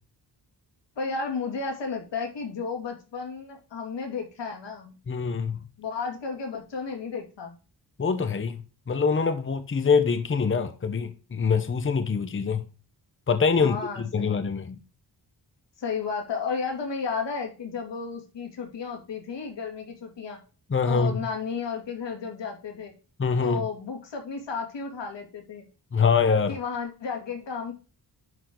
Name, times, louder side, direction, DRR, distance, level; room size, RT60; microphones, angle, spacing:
voice 1, 1.0-4.9 5.8-7.6 13.6-14.5 15.8-20.4 20.8-22.9 23.4-25.6 26.5-27.7, left 5 dB, 90° left, 2.7 m, -33 dB
voice 2, 5.1-5.6 8.0-8.6 8.9-12.6 13.3-14.7 20.7-21.2 23.2-23.6 25.9-26.6, left 5 dB, 30° left, 0.9 m, -24 dB
11.0 x 4.5 x 3.8 m
wide cardioid pair, 105°, 42 cm